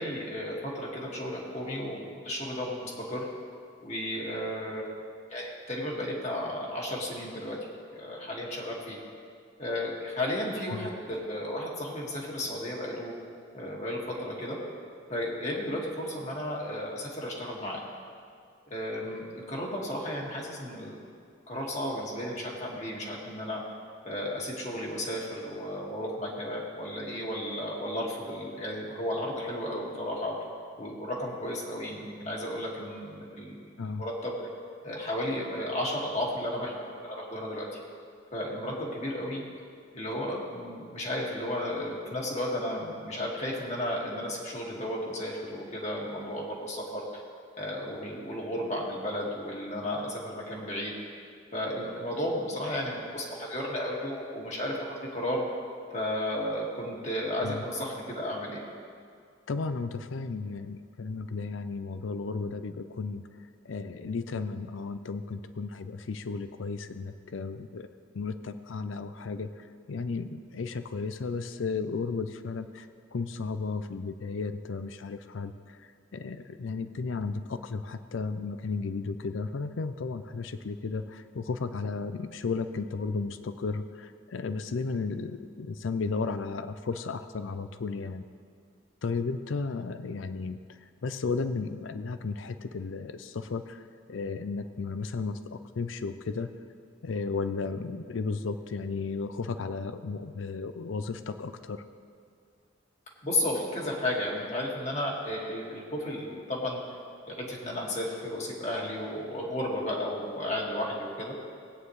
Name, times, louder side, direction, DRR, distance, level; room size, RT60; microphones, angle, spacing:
voice 1, 0.0-3.3 3.8-4.9 5.3-7.6 8.0-9.0 9.6-13.1 13.5-14.6 15.1-17.8 18.7-21.0 21.5-23.6 24.0-30.3 30.8-33.6 34.0-34.4 34.8-37.7 38.3-39.4 39.9-47.2 47.6-50.9 51.5-54.9 55.1-55.4 55.9-58.6 103.2-106.8 107.3-111.3, left 1 dB, 35° left, -3 dB, 2.0 m, -33 dB
voice 2, 59.5-63.2 63.6-67.9 68.1-88.2 89.0-93.8 94.1-96.5 97.0-101.9, left 4 dB, 80° left, 10 dB, 0.5 m, -34 dB
19.0 x 9.2 x 3.2 m, 2.3 s
head